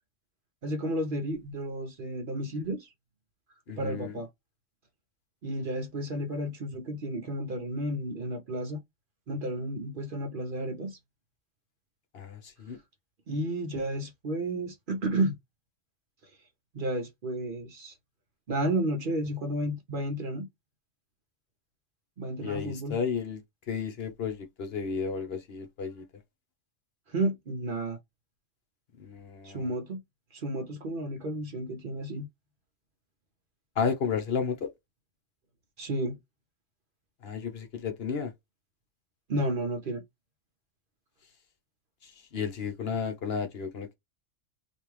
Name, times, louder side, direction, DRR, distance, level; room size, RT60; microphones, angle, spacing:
voice 1, 0.6-2.9 3.8-4.3 5.4-8.8 9.3-11.0 13.3-15.4 16.7-17.9 18.5-20.5 22.2-23.0 27.1-28.0 29.4-30.0 30.3-32.3 35.8-36.2 39.3-40.0, right 1 dB, 50° right, 0.8 m, -32 dB
voice 2, 3.7-4.2 12.1-12.8 22.4-23.4 23.7-26.0 29.0-29.7 33.8-34.7 37.2-38.3 42.0-43.9, left 6 dB, 60° left, 1.0 m, -33 dB
3.3 x 2.6 x 3.1 m
omnidirectional pair, 1.2 m